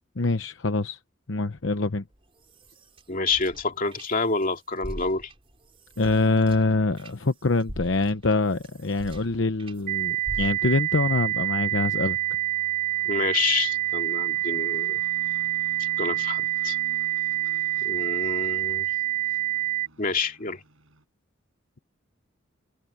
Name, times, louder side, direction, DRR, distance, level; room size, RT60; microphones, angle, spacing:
voice 1, 0.2-1.0 1.3-2.0 6.0-12.2, left 3 dB, 65° left, 0.9 m, -24 dB
sound 1, 2.1-4.5 4.8-9.8 10.2-10.9, equal, 30° right, 4.3 m, -42 dB
voice 2, 3.1-5.3 13.0-15.0 15.8-16.8 17.8-18.9 20.0-20.6, left 4 dB, 45° left, 2.7 m, -28 dB
sound 2, 7.7-21.0, right 1 dB, 85° right, 7.5 m, -52 dB
sound 3, 9.9-19.9, right 15 dB, 45° right, 1.5 m, -27 dB
head